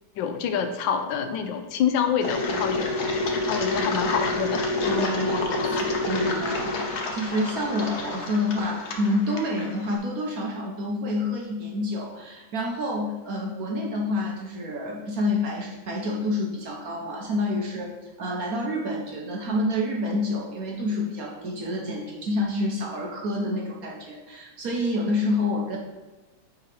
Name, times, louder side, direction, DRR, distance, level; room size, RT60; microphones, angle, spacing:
voice 1, 0.2-2.9 3.5-4.7, left 7 dB, 80° left, 7 dB, 1.3 m, -26 dB
Engine, 2.2-10.0, left 2 dB, 60° left, 0.7 m, -28 dB
voice 2, 3.4-3.9 4.9-25.8, left 1 dB, 60° right, -1 dB, 1.1 m, -28 dB
9.1 x 3.7 x 3.2 m, 1.2 s
omnidirectional pair, 2.1 m